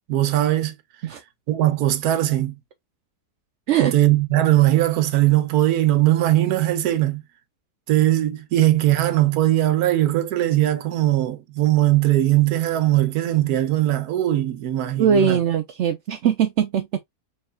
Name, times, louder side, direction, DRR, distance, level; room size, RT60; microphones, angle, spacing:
voice 1, 0.1-0.7 1.5-2.6 3.8-7.2 7.9-15.4, right 14 dB, 70° right, 1.2 m, -20 dB
voice 2, 15.0-17.0, right 8 dB, 90° right, 0.6 m, -20 dB
4.3 x 3.8 x 2.4 m
omnidirectional pair, 1.8 m